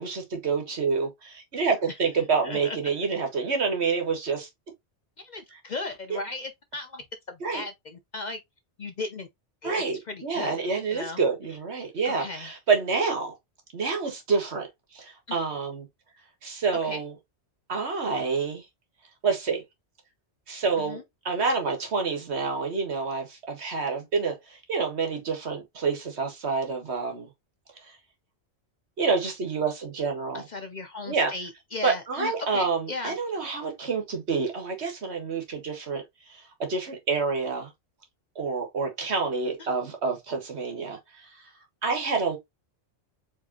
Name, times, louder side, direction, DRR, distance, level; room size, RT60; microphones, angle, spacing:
voice 1, 0.0-4.5 7.4-7.6 9.6-13.3 13.7-14.7 14.9-15.9 16.4-17.1 17.7-18.6 19.2-19.6 20.5-21.0 21.2-27.3 29.0-30.4 31.1-31.3 31.8-36.0 36.7-37.7 38.3-41.3 41.8-42.4, right 4 dB, 65° right, 1.7 m, -28 dB
voice 2, 2.4-2.8 5.2-8.4 8.8-9.3 9.6-10.6 10.9-11.2 12.0-12.6 16.8-17.0 20.8-21.0 30.3-33.2, left 3 dB, 50° left, 0.6 m, -36 dB
4.8 x 3.5 x 2.8 m
omnidirectional pair, 1.2 m